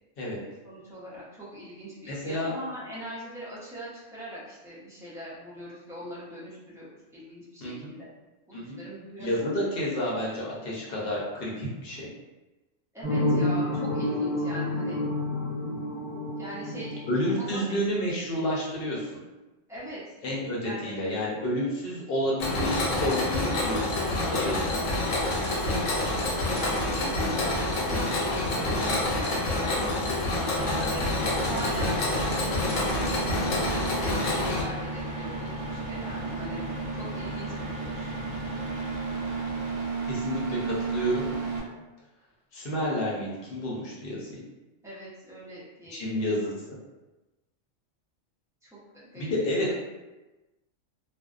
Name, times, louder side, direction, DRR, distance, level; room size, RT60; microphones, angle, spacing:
voice 1, 0.6-8.1 8.5-9.6 12.9-15.0 16.4-17.6 19.7-20.2 20.6-20.9 26.5-31.0 31.4-36.6 36.9-38.1 44.8-46.2 48.6-49.7, right 1 dB, 5° right, -9 dB, 0.3 m, -41 dB
voice 2, 2.1-2.5 7.6-7.9 8.5-8.8 9.2-12.1 17.1-19.2 20.2-24.9 40.1-41.3 42.5-44.4 45.9-46.5 49.1-49.7, equal, 55° left, -4 dB, 0.8 m, -30 dB
sound 1, 13.0-17.8, left 1 dB, 45° right, 1.0 m, -29 dB
Mechanisms, 22.4-34.6, left 1 dB, 80° left, 1.0 m, -27 dB
sound 2, 30.6-41.6, right 3 dB, 90° right, 1.0 m, -33 dB
2.5 x 2.1 x 2.3 m, 1.1 s
omnidirectional pair, 1.3 m